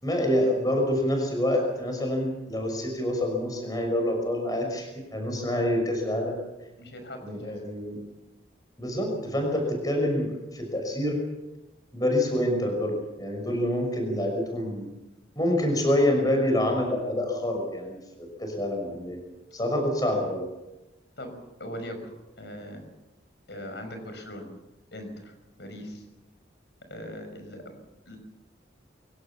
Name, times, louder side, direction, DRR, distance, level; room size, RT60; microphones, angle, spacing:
voice 1, 0.0-6.4 7.2-8.0 8.8-11.2 11.9-14.9 15.4-19.2 19.5-20.5, left 1 dB, 20° left, 2 dB, 5.9 m, -27 dB
voice 2, 6.8-7.6 21.2-22.1 22.4-22.8 23.5-24.5 24.9-26.1 26.9-27.6 28.1-28.2, equal, 65° left, 6 dB, 6.1 m, -40 dB
24.0 x 17.5 x 7.2 m, 1.0 s
head